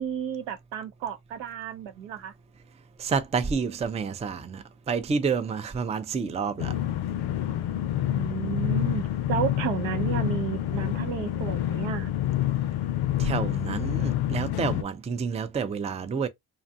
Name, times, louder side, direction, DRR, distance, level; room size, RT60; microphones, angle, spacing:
voice 1, 0.0-2.3 8.1-12.1, right 9 dB, 75° right, 0.7 m, -32 dB
voice 2, 3.0-6.7 13.2-16.3, right 5 dB, 15° right, 0.4 m, -29 dB
sound 1, 6.6-14.8, left 12 dB, 55° left, 0.5 m, -27 dB
2.5 x 2.3 x 2.6 m
hypercardioid pair, 50°, 46 cm